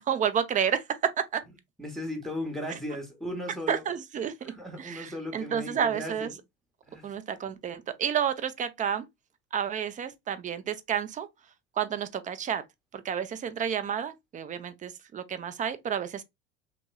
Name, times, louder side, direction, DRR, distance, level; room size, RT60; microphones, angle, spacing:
voice 1, 0.1-1.4 3.7-4.5 4.8-6.3 7.0-9.1 9.5-11.3 11.8-12.6 12.9-16.2, right 8 dB, 25° right, 0.5 m, -30 dB
voice 2, 1.8-3.8 4.4-6.3 6.9-7.1, left 1 dB, ahead, 0.8 m, -36 dB
2.9 x 2.8 x 2.2 m
supercardioid pair, 95°, 31 cm